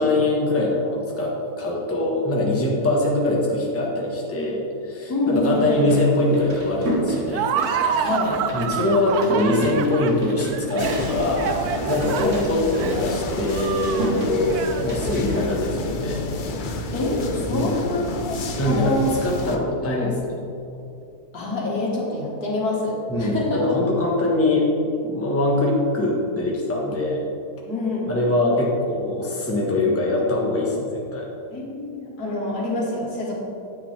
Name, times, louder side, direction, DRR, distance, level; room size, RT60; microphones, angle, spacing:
voice 1, 0.0-7.4 7.9-8.1 8.5-11.5 11.9-16.2 17.5-17.7 18.6-20.3 23.1-24.7 25.0-27.2 28.1-31.3, left 2 dB, 10° left, -3 dB, 1.2 m, -23 dB
voice 2, 5.1-5.8 8.0-8.4 12.1-12.4 15.1-15.4 16.9-19.1 21.3-23.6 27.6-28.2 31.5-33.3, left 2 dB, 80° left, -3 dB, 2.1 m, -26 dB
sound 1, 5.3-15.0, right 1 dB, 50° right, 1.8 m, -32 dB
Laughter, 7.3-15.6, right 7 dB, 75° right, 1.1 m, -28 dB
sound 2, 10.8-19.6, left 3 dB, 60° left, 0.5 m, -30 dB
9.6 x 8.6 x 3.4 m, 2.6 s
omnidirectional pair, 1.6 m